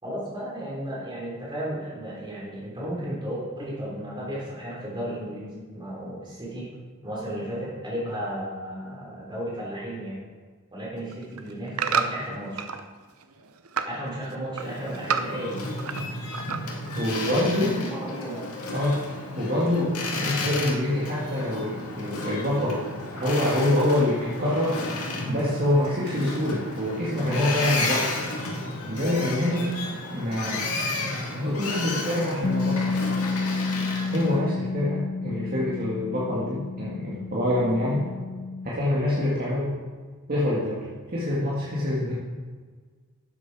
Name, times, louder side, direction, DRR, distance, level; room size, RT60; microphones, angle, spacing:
voice 1, 0.0-6.7 7.0-10.2 10.7-12.7 13.9-15.6 17.4-18.5, right 1 dB, 20° right, -5 dB, 3.6 m, -34 dB
sound 1, 11.0-12.8 13.2-14.0 14.3-16.1 16.3-16.9 17.4-17.5, right 6 dB, 75° right, 0.7 m, -29 dB
Boat Water vehicle, 14.5-34.4, left 2 dB, 80° left, 1.9 m, -33 dB
voice 2, 16.9-17.7 18.7-19.0 19.4-22.9 23.1-24.8 25.3-28.1 28.9-29.7 30.1-30.6 31.3-33.0 34.1-38.1 38.6-39.7 40.3-40.8 41.1-42.1, left 1 dB, 40° right, -7 dB, 2.0 m, -25 dB
Bass guitar, 32.4-38.7, left 4 dB, 40° left, 0.3 m, -30 dB
12.0 x 7.7 x 4.8 m, 1.5 s
head